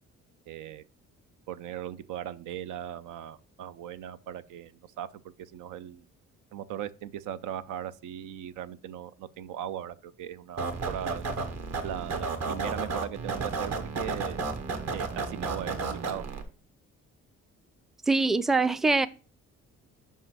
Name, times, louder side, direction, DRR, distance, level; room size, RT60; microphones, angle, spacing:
voice 1, 0.5-0.8 1.5-5.1 5.4-6.0 6.5-11.2 11.8-14.4 14.9-16.2, right 10 dB, 85° right, 0.6 m, -38 dB
sound 1, 10.6-16.4, right 4 dB, 60° right, 1.4 m, -33 dB
voice 2, 18.1-19.1, right 3 dB, ahead, 0.4 m, -23 dB
5.6 x 5.5 x 6.0 m
cardioid pair, 90°, 30 cm